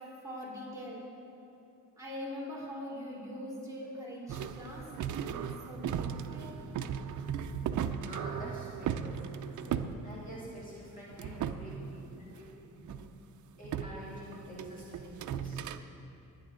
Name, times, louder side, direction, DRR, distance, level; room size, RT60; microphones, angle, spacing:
voice 1, 0.2-1.1 2.0-6.6 7.5-7.7 12.7-12.9, equal, 10° right, -7 dB, 3.8 m, -43 dB
sound 1, 4.3-10.8 11.1-12.5 12.9-13.1 13.6-15.8, right 8 dB, 65° right, 0.6 m, -37 dB
voice 2, 8.0-12.5 13.6-15.7, equal, 25° left, -8 dB, 2.7 m, -47 dB
22.0 x 9.7 x 3.8 m, 2.8 s
cardioid pair, 140°, 32 cm